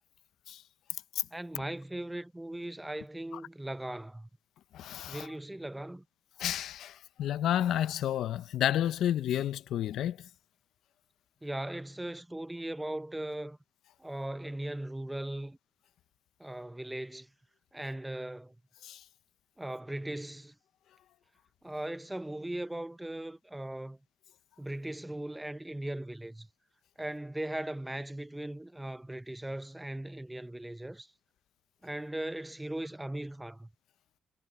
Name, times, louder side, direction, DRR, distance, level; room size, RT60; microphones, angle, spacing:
voice 1, 1.3-4.3 5.1-6.0 11.4-13.6 14.0-15.6 16.4-17.3 17.7-18.6 19.6-20.5 21.6-24.0 24.6-26.5 27.0-31.1 31.8-33.7, right 1 dB, 10° right, 0.7 m, -38 dB
voice 2, 4.7-5.3 6.4-10.3 18.8-19.0, left 11 dB, 75° left, 0.7 m, -31 dB
cardioid pair, 90°, 0 cm